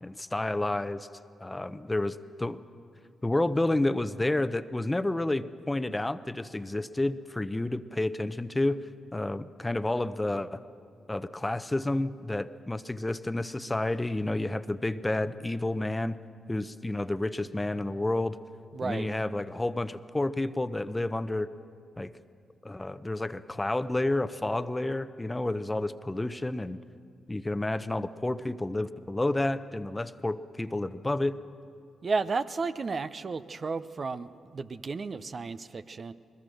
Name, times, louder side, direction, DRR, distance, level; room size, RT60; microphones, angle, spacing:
voice 1, 0.0-1.1 1.4-2.6 3.2-8.8 9.1-10.6 11.1-16.2 16.5-18.4 18.8-21.5 22.0-22.1 22.6-26.8 27.3-31.4, left 2 dB, 20° left, 13 dB, 0.8 m, -30 dB
voice 2, 18.7-19.1 32.0-36.1, right 4 dB, 50° right, 12 dB, 0.7 m, -33 dB
22.0 x 20.0 x 6.5 m, 2.4 s
hypercardioid pair, 40°, 0 cm